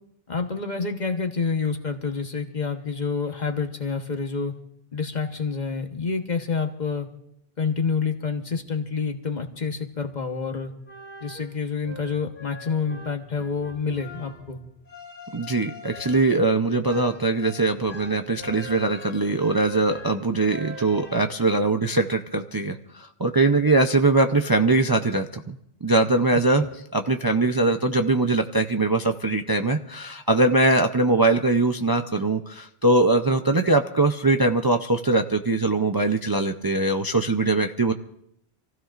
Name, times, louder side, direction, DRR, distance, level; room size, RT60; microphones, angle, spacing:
voice 1, 0.3-4.6 4.9-7.1 7.6-10.7 11.2-14.6 26.6-26.7, left 5 dB, 45° left, 5 dB, 1.2 m, -28 dB
sound 1, 10.6-21.6, left 1 dB, 85° left, 2.7 m, -43 dB
voice 2, 15.3-26.6 26.9-37.9, right 2 dB, 30° right, 5 dB, 0.5 m, -22 dB
28.0 x 15.5 x 2.5 m, 0.76 s
omnidirectional pair, 1.1 m